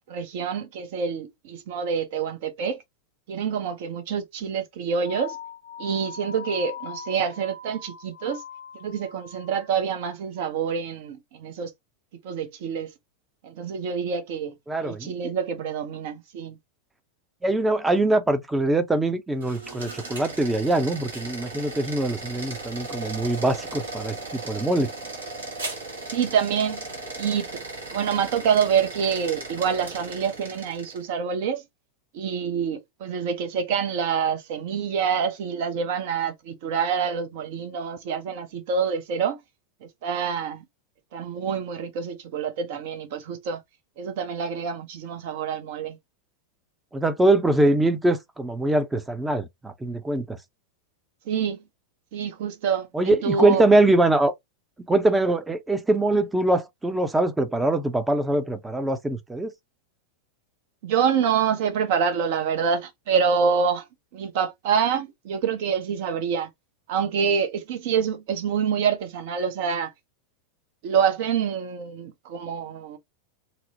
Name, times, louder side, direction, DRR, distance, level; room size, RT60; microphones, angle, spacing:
voice 1, 0.1-2.8 3.3-5.4 5.8-8.4 8.8-11.7 12.2-12.9 13.4-14.5 14.8-16.6 26.1-26.9 27.2-27.6 27.9-31.6 32.1-39.4 39.8-40.6 41.1-43.6 44.0-46.0 51.3-51.6 52.1-53.6 60.8-63.8 64.1-66.5 66.9-69.9 70.8-73.0, right 7 dB, 50° right, 0.6 m, -26 dB
sound 1, 5.0-9.7, left 6 dB, 65° left, 0.5 m, -40 dB
voice 2, 14.7-15.3 17.4-24.9 46.9-50.4 52.9-54.3 54.9-59.5, right 2 dB, 10° right, 0.5 m, -23 dB
sound 2, 19.3-31.1, right 3 dB, 65° right, 1.0 m, -37 dB
2.7 x 2.0 x 2.7 m
figure-of-eight pair, 90°, 0 cm